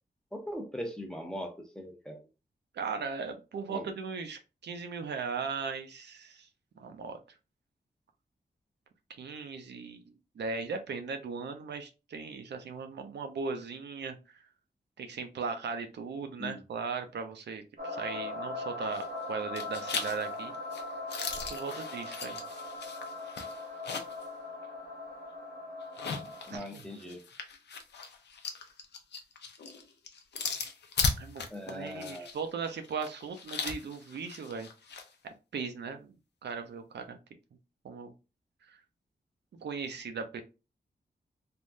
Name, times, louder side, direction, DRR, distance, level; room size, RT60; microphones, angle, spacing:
voice 1, 0.3-2.2 3.7-3.9 16.4-16.6 26.5-27.2 31.5-32.3, equal, 5° left, 3 dB, 0.6 m, -40 dB
voice 2, 2.7-6.5 6.8-7.2 9.2-10.0 10.4-14.2 15.0-20.5 21.5-22.4 26.5-26.8 31.2-34.7 35.5-36.2 36.4-37.2 37.8-38.1 38.7-38.8 39.5-40.4, right 5 dB, 80° right, 6 dB, 0.5 m, -38 dB
sound 1, 17.8-26.6, left 2 dB, 60° right, 0.9 m, -40 dB
sound 2, 18.8-19.2 19.6-24.3 24.6-24.7 25.8-35.1, left 4 dB, 85° left, 0.5 m, -38 dB
3.4 x 2.2 x 2.5 m, 0.30 s
wide cardioid pair, 140°, 17 cm